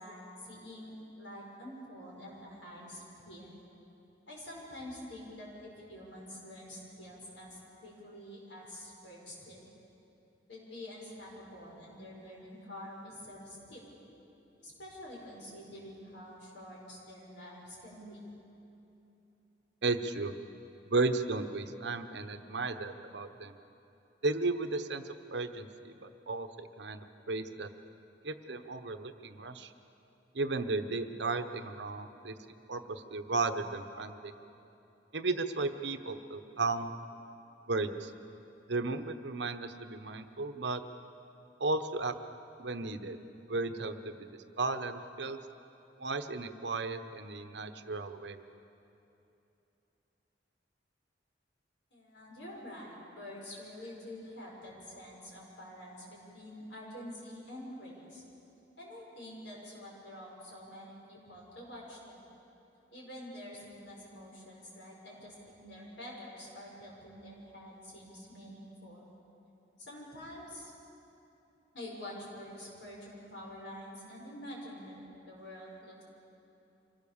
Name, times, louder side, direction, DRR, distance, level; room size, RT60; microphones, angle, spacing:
voice 1, 0.0-3.5 4.3-9.7 10.5-13.8 14.6-18.2 51.9-58.2 58.8-62.2 62.9-69.1 69.8-70.7 71.7-75.0 75.3-76.0, left 1 dB, 80° left, -4 dB, 6.9 m, -47 dB
voice 2, 19.8-20.3 20.9-23.5 24.2-27.7 28.2-29.7 30.3-32.3 32.7-34.3 35.1-36.9 37.7-38.1 38.7-40.8 41.6-42.1 42.6-43.2 43.5-44.3 44.6-45.4 46.0-48.4, right 3 dB, 65° right, 9 dB, 1.0 m, -34 dB
25.5 x 17.5 x 7.2 m, 2.8 s
head